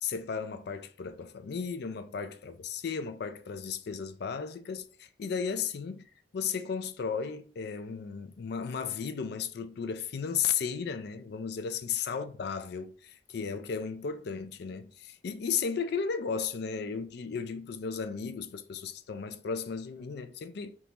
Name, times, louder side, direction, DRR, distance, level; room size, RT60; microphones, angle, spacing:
voice 1, 0.0-6.0 6.3-20.7, left 6 dB, 65° left, 0.4 m, -35 dB
4.0 x 3.6 x 2.8 m
head